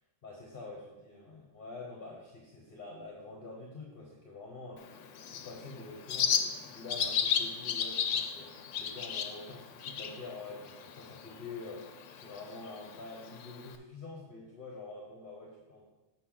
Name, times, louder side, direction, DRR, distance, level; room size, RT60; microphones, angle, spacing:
voice 1, 0.2-5.0 5.3-15.8, left 3 dB, 45° left, -2 dB, 1.3 m, -46 dB
Bird, 4.8-13.8, left 7 dB, 75° left, 1.0 m, -35 dB
7.6 x 6.7 x 3.9 m, 1.1 s
omnidirectional pair, 1.3 m